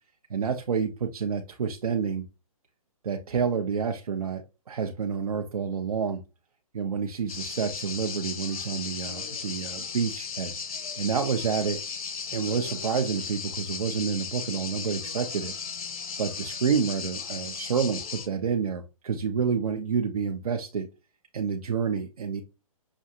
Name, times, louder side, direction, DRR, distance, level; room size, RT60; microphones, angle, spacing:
voice 1, 0.3-2.3 3.0-6.2 6.7-11.8 12.3-15.5 16.2-20.9 21.3-22.4, right 6 dB, 80° right, 4 dB, 0.7 m, -29 dB
sound 1, 7.3-18.3, left 6 dB, 70° left, 1.2 m, -36 dB
6.1 x 2.5 x 2.7 m, 0.29 s
hypercardioid pair, 145°, 18 cm